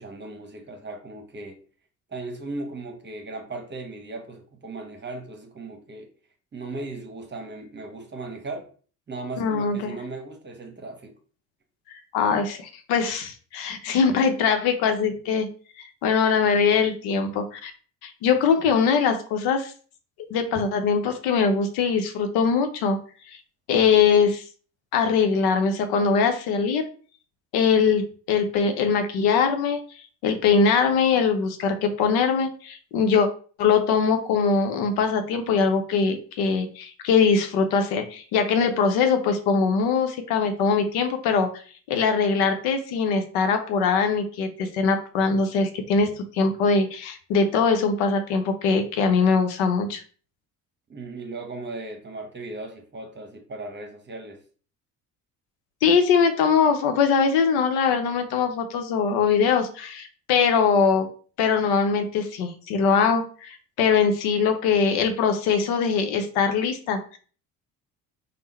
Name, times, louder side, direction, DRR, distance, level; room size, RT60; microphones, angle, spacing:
voice 1, 0.0-1.6 2.1-6.1 6.5-8.7 9.1-11.2 50.9-54.4, right 2 dB, 25° right, 4 dB, 1.0 m, -37 dB
voice 2, 9.4-9.9 12.1-15.5 15.8-17.7 18.0-19.7 20.2-23.0 23.3-23.4 23.7-24.4 24.9-26.8 27.5-29.8 30.2-33.3 33.6-41.5 41.9-50.0 55.8-61.1 61.4-67.2, left 5 dB, 65° left, 7 dB, 0.7 m, -22 dB
3.6 x 2.0 x 4.1 m, 0.41 s
hypercardioid pair, 55°, 41 cm